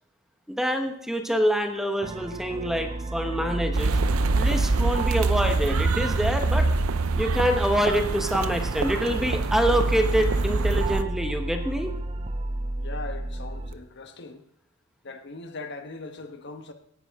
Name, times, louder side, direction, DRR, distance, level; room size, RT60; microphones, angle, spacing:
voice 1, 0.5-4.0 4.3-6.7 7.1-11.9, equal, ahead, 1.1 m, -26 dB
sound 1, 2.0-13.7, right 2 dB, 30° right, 0.7 m, -30 dB
sound 2, 3.7-11.0, right 3 dB, 85° right, 0.6 m, -26 dB
voice 2, 12.8-14.4 15.0-16.7, left 3 dB, 55° left, 1.3 m, -40 dB
17.0 x 10.0 x 3.7 m
head